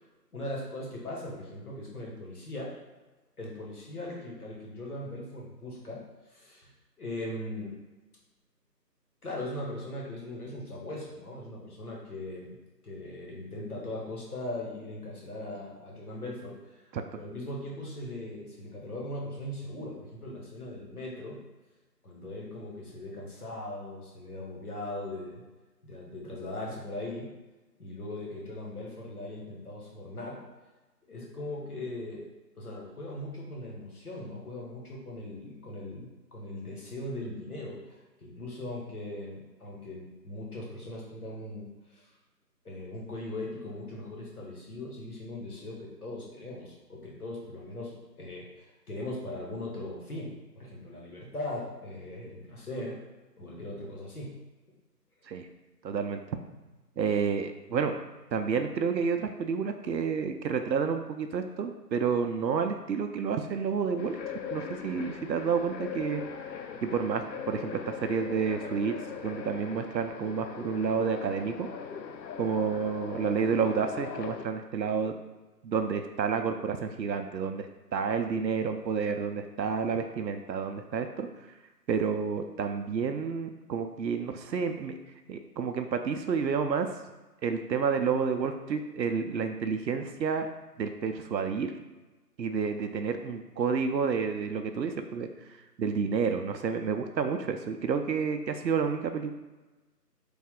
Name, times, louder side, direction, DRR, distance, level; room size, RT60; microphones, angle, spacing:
voice 1, 0.3-2.7 3.4-6.0 6.3-6.7 7.0-7.7 9.2-12.6 12.8-21.4 22.0-25.4 25.8-27.3 27.8-30.4 31.1-32.2 32.5-42.1 42.6-53.0 53.4-54.4 72.6-72.7, left 1 dB, 60° left, -3 dB, 1.2 m, -39 dB
voice 2, 55.8-56.2 57.0-57.9 58.3-64.2 64.5-66.2 66.8-68.9 69.2-71.7 72.4-75.1 75.6-81.3 81.9-84.9 85.3-86.9 87.4-90.5 90.8-91.7 92.4-95.3 95.8-99.3, right 6 dB, 85° right, 7 dB, 0.6 m, -30 dB
sound 1, 64.0-74.4, left 7 dB, 90° left, 0.6 m, -40 dB
3.4 x 2.4 x 3.5 m, 1.1 s
figure-of-eight pair, 175°, 50 cm